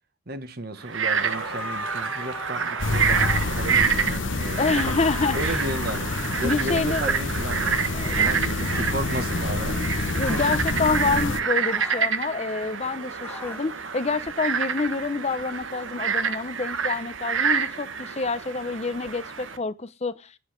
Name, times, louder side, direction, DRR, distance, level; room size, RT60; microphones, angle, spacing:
voice 1, 0.3-5.0 5.3-6.1 6.4-9.8 10.3-10.5, right 1 dB, 50° right, 1.4 m, -33 dB
Frog, 0.8-19.6, right 6 dB, 80° right, 1.3 m, -28 dB
sound 1, 1.3-3.6 4.7-7.0 8.6-9.0 10.2-10.7 11.6-12.2 13.2-13.7, left 2 dB, 10° left, 1.2 m, -40 dB
sound 2, 2.8-11.4, left 3 dB, 70° left, 1.0 m, -28 dB
voice 2, 4.6-5.5 6.4-7.1 7.9-8.4 10.1-20.4, left 4 dB, 35° left, 0.7 m, -27 dB
10.0 x 8.6 x 5.1 m
head